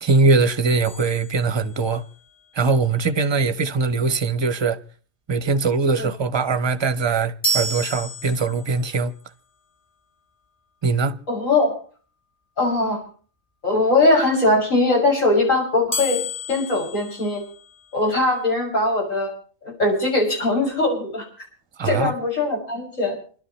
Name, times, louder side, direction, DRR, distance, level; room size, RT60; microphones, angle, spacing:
voice 1, 0.0-2.0 2.5-4.8 5.3-9.1 10.8-11.2 21.8-22.1, right 4 dB, 25° right, 0.7 m, -21 dB
sound 1, 0.8-2.1 7.4-8.9 15.9-18.0, equal, 25° left, 1.7 m, -30 dB
voice 2, 11.3-11.8 12.6-13.0 13.6-16.2 16.5-17.4 17.9-19.3 19.6-21.3 21.8-23.2, left 2 dB, 70° left, 7.0 m, -20 dB
28.5 x 12.0 x 3.1 m
omnidirectional pair, 1.4 m